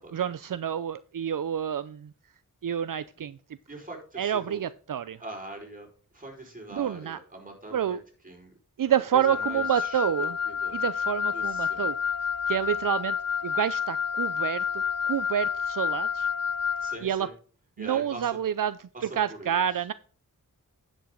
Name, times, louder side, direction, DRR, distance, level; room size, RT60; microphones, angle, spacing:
voice 1, 0.1-2.1 2.6-3.4 4.2-5.2 6.7-7.2 7.7-8.0 8.8-10.4 10.7-13.2 13.4-16.3 17.0-17.3 17.8-19.9, right 9 dB, 70° right, 15 dB, 0.5 m, -28 dB
voice 2, 3.7-4.6 5.2-5.9 6.1-8.0 8.2-8.5 9.1-10.8 11.3-11.9 16.8-17.3 17.8-18.3 18.9-19.6, right 2 dB, 25° right, 0 dB, 4.6 m, -42 dB
Wind instrument woodwind instrument, 9.2-17.0, left 7 dB, 50° left, 0.6 m, -29 dB
10.0 x 7.8 x 3.7 m, 0.42 s
wide cardioid pair, 65°, 34 cm